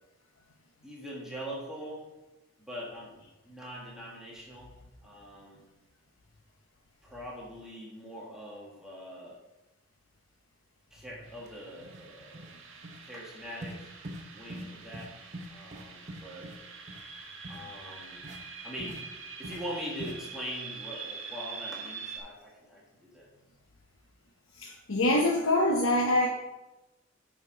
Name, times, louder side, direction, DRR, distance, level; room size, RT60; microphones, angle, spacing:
voice 1, 0.8-2.1 2.6-4.7 5.0-5.7 7.0-9.4 10.9-12.5 13.0-13.9 14.3-15.1 15.5-16.5 17.5-18.3 18.6-19.0 19.4-23.3, equal, 5° right, -5 dB, 1.5 m, -42 dB
sound 1, 11.3-22.2, right 5 dB, 75° right, 1.3 m, -45 dB
sound 2, 11.4-11.5 11.8-12.1 12.3-12.6 12.8-13.0 13.6-13.8 14.0-14.2 14.5-14.7 14.9-15.1 15.3-16.6 16.9-17.0 17.4-17.6 18.2-18.4 18.8-19.0 19.4-19.6 20.0-20.1, right 1 dB, 40° right, 1.0 m, -42 dB
voice 2, 24.6-26.3, left 1 dB, 90° left, 0 dB, 0.9 m, -25 dB
8.4 x 4.4 x 5.0 m, 1.0 s
head